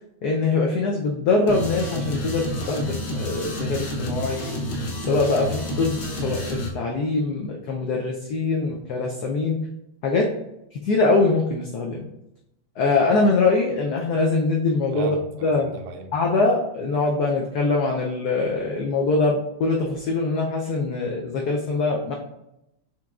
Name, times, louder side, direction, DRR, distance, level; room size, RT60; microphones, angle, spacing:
voice 1, 0.2-4.6 5.1-9.6 10.0-10.3 10.9-12.0 12.8-15.2 15.4-15.7 16.1-22.1, left 3 dB, 90° left, 0 dB, 0.8 m, -23 dB
sound 1, 1.5-6.7, equal, 60° left, 1.2 m, -29 dB
voice 2, 14.9-16.1, right 5 dB, 85° right, 6 dB, 1.5 m, -35 dB
5.9 x 3.1 x 2.3 m, 0.85 s
omnidirectional pair, 2.3 m